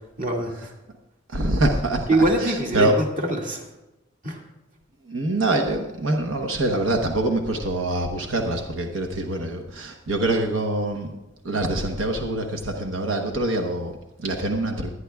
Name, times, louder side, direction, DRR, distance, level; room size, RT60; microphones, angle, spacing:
voice 1, 0.2-0.5 2.1-3.7 4.2-4.4, right 1 dB, 45° right, 0 dB, 2.1 m, -23 dB
voice 2, 1.3-2.9 5.1-11.1 11.4-14.9, right 2 dB, 90° right, 2 dB, 1.0 m, -25 dB
22.0 x 9.8 x 2.3 m, 1.0 s
head